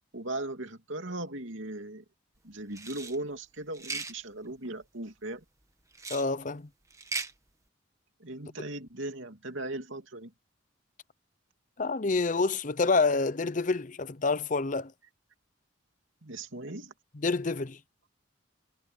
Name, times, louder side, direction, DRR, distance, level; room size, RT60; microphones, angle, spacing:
voice 1, 0.1-2.0 2.4-5.4 8.2-10.3 16.2-16.9, right 2 dB, 70° right, 2.8 m, -38 dB
sound 1, 2.7-3.2 3.7-4.1 5.9-6.3 6.9-7.3, right 3 dB, 15° right, 1.4 m, -37 dB
voice 2, 6.1-6.7 11.8-14.9 17.1-17.8, left 3 dB, 40° left, 0.6 m, -28 dB
head